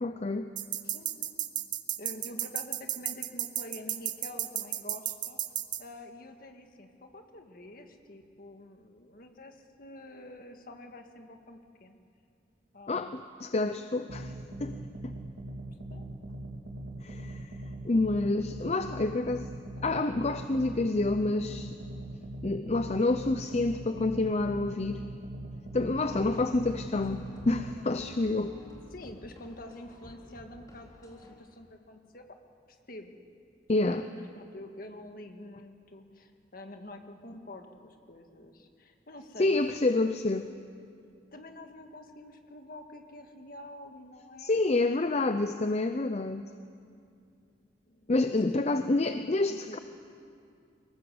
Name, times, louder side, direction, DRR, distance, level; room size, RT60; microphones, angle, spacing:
voice 1, 0.0-0.5 12.9-14.3 14.6-14.8 15.0-15.1 17.0-17.5 17.8-19.5 19.8-21.8 22.4-25.0 25.7-28.5 33.7-34.0 39.4-40.5 44.4-46.5 48.1-49.8, left 2 dB, 35° left, 9 dB, 0.6 m, -28 dB
sound 1, 0.6-5.8, right 13 dB, 45° right, 0.9 m, -33 dB
voice 2, 0.8-1.3 2.0-5.4 5.8-12.0 12.7-13.2 15.9-16.0 28.9-32.3 32.7-33.1 33.8-39.8 40.2-40.3 41.3-45.3 47.9-49.8, left 1 dB, 55° left, 5 dB, 1.9 m, -47 dB
sound 2, 14.1-27.7, right 1 dB, 75° right, 2.6 m, -41 dB
sound 3, 26.0-31.3, left 1 dB, 20° left, 3.6 m, -51 dB
23.5 x 19.5 x 7.9 m, 2.4 s
head